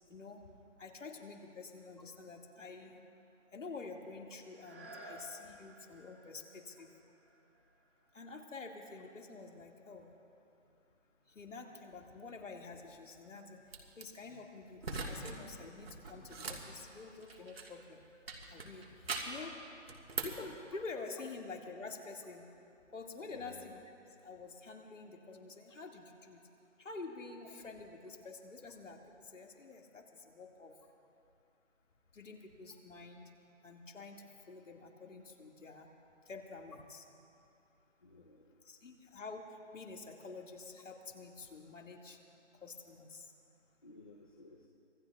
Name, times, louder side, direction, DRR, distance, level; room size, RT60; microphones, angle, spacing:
voice 1, 0.1-0.4 0.8-3.0 3.5-6.9 8.1-10.1 11.3-13.6 14.0-18.0 18.5-19.5 20.2-22.4 22.9-24.0 24.2-26.4 26.8-30.7 32.1-33.3 33.6-35.9 36.3-37.0 38.6-42.2 42.6-43.3, left 3 dB, 85° left, 1 dB, 2.1 m, -48 dB
sound 1, 4.5-10.1 10.7-10.8, right 1 dB, 10° right, 0.9 m, -56 dB
sound 2, 13.7-14.0 14.8-15.4 15.7-17.8 18.3-19.5 19.9-20.5, right 4 dB, 55° right, 1.7 m, -41 dB
voice 2, 23.2-23.6 38.0-38.6 43.8-44.7, left 2 dB, 30° left, 0 dB, 0.7 m, -55 dB
25.0 x 19.0 x 2.4 m, 2.7 s
hypercardioid pair, 175°, 37 cm